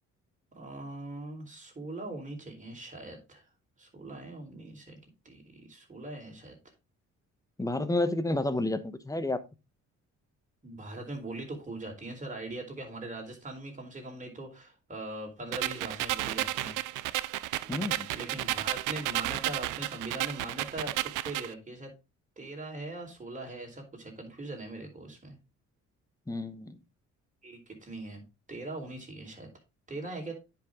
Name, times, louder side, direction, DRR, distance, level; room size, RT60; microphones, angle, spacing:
voice 1, 0.5-3.4 3.8-5.0 5.2-6.6 10.6-16.8 18.1-21.9 22.4-25.4 27.4-28.2 28.5-29.5 29.9-30.3, right 2 dB, 25° right, 1 dB, 4.2 m, -41 dB
voice 2, 7.6-9.4 17.7-18.1 26.3-26.8, left 2 dB, 10° left, 11 dB, 1.1 m, -30 dB
sound 1, 15.5-21.5, right 16 dB, 90° right, 0.5 m, -32 dB
9.7 x 5.8 x 3.7 m, 0.27 s
cardioid pair, 90°, 30 cm